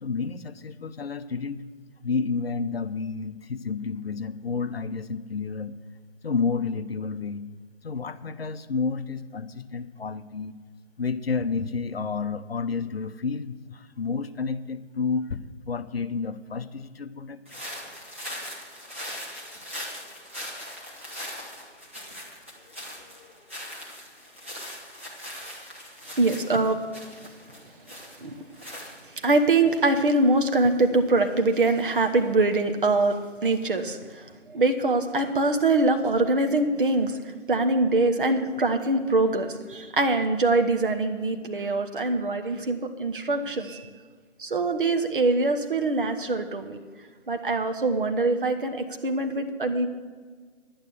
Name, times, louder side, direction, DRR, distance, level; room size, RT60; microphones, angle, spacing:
voice 1, 0.0-1.6 2.0-5.7 6.2-7.5 7.8-10.6 11.0-17.4, left 5 dB, 55° left, 11 dB, 0.7 m, -30 dB
sound 1, 17.4-29.4, equal, 10° right, 0.7 m, -40 dB
voice 2, 26.2-26.8 28.2-28.3 29.2-34.3 34.5-37.2 37.5-43.9 44.4-46.8 47.3-49.9, right 2 dB, 45° right, 6 dB, 1.1 m, -23 dB
11.0 x 9.0 x 6.3 m, 1.5 s
figure-of-eight pair, 160°, 36 cm